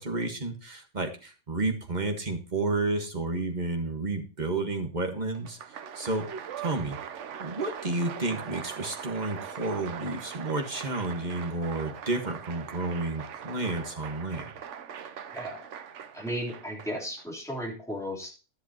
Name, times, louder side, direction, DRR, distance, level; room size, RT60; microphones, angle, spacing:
voice 1, 0.0-5.6 5.9-6.3 6.6-7.0 7.4-14.5, right 2 dB, 40° right, 5 dB, 1.5 m, -31 dB
Applause, 5.3-17.2, right 8 dB, 80° right, 1.1 m, -41 dB
voice 2, 15.3-15.6 16.1-18.3, equal, ahead, -2 dB, 3.2 m, -35 dB
11.5 x 10.5 x 2.8 m, 0.32 s
omnidirectional pair, 1.2 m